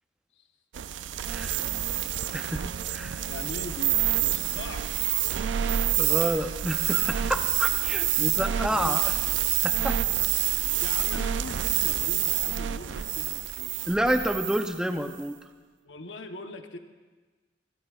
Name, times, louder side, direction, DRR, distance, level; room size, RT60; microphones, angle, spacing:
sound 1, 0.7-14.8, right 12 dB, 75° right, 0.4 m, -27 dB
voice 1, 1.3-1.6 2.3-3.2 6.0-9.1 9.6-10.0 10.4-10.5 13.8-15.3, equal, 5° right, 6 dB, 0.6 m, -29 dB
voice 2, 3.3-4.9 8.7-9.0 10.8-13.7 15.8-16.8, left 2 dB, 80° left, 6 dB, 1.0 m, -41 dB
27.5 x 12.5 x 2.4 m, 1.3 s
head